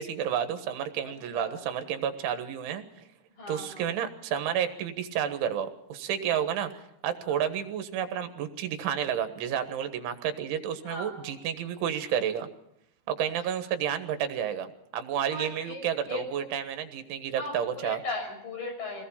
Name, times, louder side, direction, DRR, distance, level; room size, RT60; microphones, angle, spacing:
voice 1, 0.0-2.8 3.5-6.7 7.0-12.5 13.1-18.0, right 9 dB, 80° right, 8 dB, 3.9 m, -31 dB
voice 2, 1.0-1.6 3.3-3.8 7.2-7.4 10.8-11.3 13.2-13.3 15.3-16.5 17.4-19.0, left 3 dB, 45° left, 3 dB, 7.5 m, -38 dB
24.5 x 19.0 x 5.7 m, 0.80 s
omnidirectional pair, 5.4 m